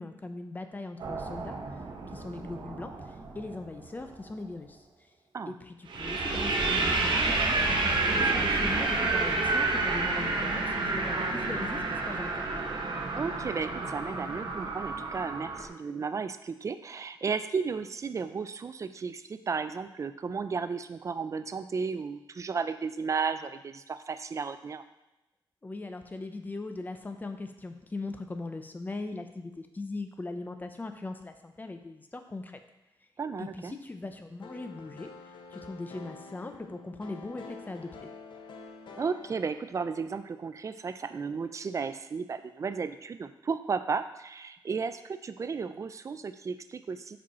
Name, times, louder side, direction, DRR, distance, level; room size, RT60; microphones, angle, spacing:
voice 1, 0.0-1.6 2.1-4.8 5.5-7.4 7.7-12.5 25.6-32.6 33.4-38.1, left 2 dB, 20° left, 7 dB, 0.6 m, -40 dB
sound 1, 1.0-3.9 5.9-15.7, right 3 dB, 70° right, 0.9 m, -29 dB
voice 2, 13.2-24.8 33.2-33.7 39.0-47.2, right 5 dB, 40° right, 11 dB, 0.4 m, -34 dB
sound 2, 34.4-40.3, left 4 dB, 70° left, 0.7 m, -48 dB
5.5 x 5.2 x 4.2 m, 0.95 s
wide cardioid pair, 115°, 8 cm